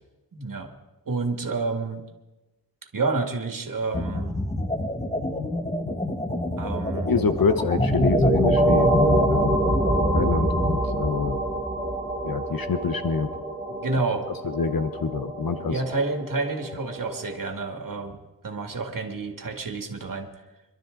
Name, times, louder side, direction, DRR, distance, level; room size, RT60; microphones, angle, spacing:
voice 1, 0.3-0.7 1.1-2.0 2.9-4.4 6.6-7.3 13.7-14.3 15.7-20.3, right 3 dB, 60° right, 4 dB, 2.1 m, -29 dB
sound 1, 3.9-10.8, left 1 dB, 20° left, 1.6 m, -28 dB
voice 2, 7.1-9.6 10.1-11.4 12.2-13.3 14.4-15.8, left 5 dB, 65° left, 10 dB, 0.9 m, -26 dB
sound 2, 7.8-17.3, right 1 dB, ahead, 3.1 m, -25 dB
26.0 x 12.0 x 3.9 m, 1.1 s
wide cardioid pair, 65°, 38 cm